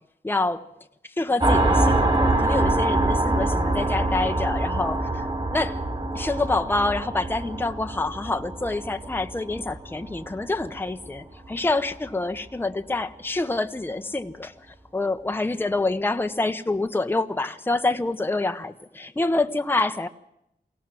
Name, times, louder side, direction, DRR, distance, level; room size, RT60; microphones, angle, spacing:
voice 1, 0.2-0.7 1.0-5.8 6.1-20.1, left 2 dB, 10° left, 0.9 m, -27 dB
sound 1, 1.4-10.7, right 2 dB, 30° right, 3.9 m, -24 dB
23.0 x 17.5 x 7.6 m
wide cardioid pair, 105°, 17 cm